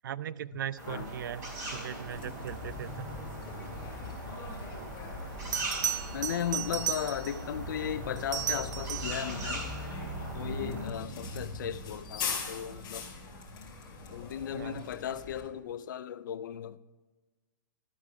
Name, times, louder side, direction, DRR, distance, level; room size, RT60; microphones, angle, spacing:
voice 1, 0.0-1.4 1.7-3.2 14.5-14.8, right 10 dB, 75° right, 0.4 m, -39 dB
sound 1, 0.8-10.9, right 2 dB, 25° right, 3.3 m, -41 dB
Bus, 2.1-15.4, left 3 dB, 30° left, 2.7 m, -41 dB
Bell, 5.5-7.5 8.2-9.2 11.9-12.2, right 9 dB, 60° right, 0.9 m, -34 dB
voice 2, 6.1-9.7 10.3-13.1 14.1-16.8, left 9 dB, 65° left, 0.5 m, -36 dB
12.0 x 4.6 x 4.9 m
hypercardioid pair, 150°, 11 cm